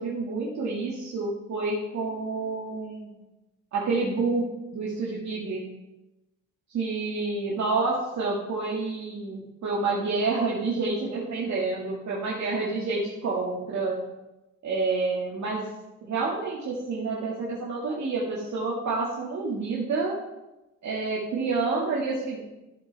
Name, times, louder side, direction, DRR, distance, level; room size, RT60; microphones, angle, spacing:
voice 1, 0.0-3.1 3.7-5.6 6.7-14.0 14.6-15.7 16.0-20.1 20.8-22.4, right 3 dB, 65° right, -5 dB, 2.1 m, -28 dB
13.5 x 7.7 x 3.5 m, 0.99 s
cardioid pair, 105°, 31 cm